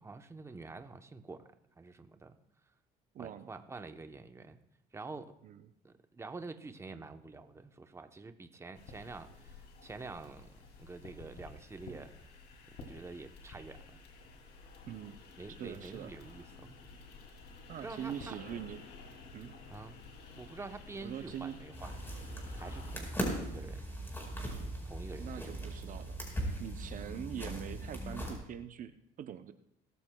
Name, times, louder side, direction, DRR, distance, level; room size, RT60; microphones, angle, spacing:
voice 1, 0.0-1.5 1.8-2.4 3.2-4.6 4.9-5.3 5.8-12.1 12.7-14.0 15.4-16.8 17.8-18.4 19.7-20.0 20.4-22.0 22.5-23.8 24.8-25.7, right 3 dB, 15° right, 7 dB, 0.8 m, -47 dB
voice 2, 3.1-3.5 5.4-5.6 14.8-15.2 15.6-16.1 17.7-18.8 19.3-19.6 21.0-21.6 25.2-26.2 26.6-29.5, right 9 dB, 50° right, 9 dB, 0.6 m, -43 dB
sound 1, 8.7-23.0, left 3 dB, 80° left, 2.7 m, -52 dB
sound 2, 21.7-28.4, right 1 dB, 15° left, 4.4 m, -39 dB
22.0 x 14.0 x 2.2 m, 0.78 s
cardioid pair, 110°, 17 cm